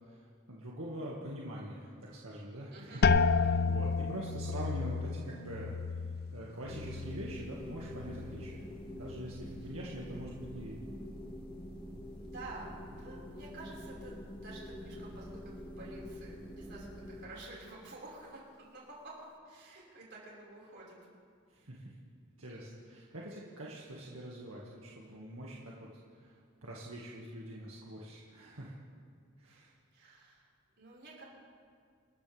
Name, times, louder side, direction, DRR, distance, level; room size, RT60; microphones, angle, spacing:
voice 1, 0.1-5.7 6.3-8.7 8.9-10.9 21.5-22.0 22.4-25.9 26.1-28.7 29.4-29.7, right 1 dB, 85° right, -5 dB, 2.0 m, -44 dB
voice 2, 2.7-3.1 12.2-21.0 29.5-29.6 29.9-30.4 30.8-31.2, right 2 dB, 55° right, -4 dB, 5.3 m, -50 dB
sound 1, 3.0-8.7 9.0-9.7 10.2-10.6, left 4 dB, 50° left, 0.5 m, -32 dB
sound 2, 6.7-17.2, equal, 25° left, 1.9 m, -46 dB
28.5 x 13.5 x 3.5 m, 2.1 s
head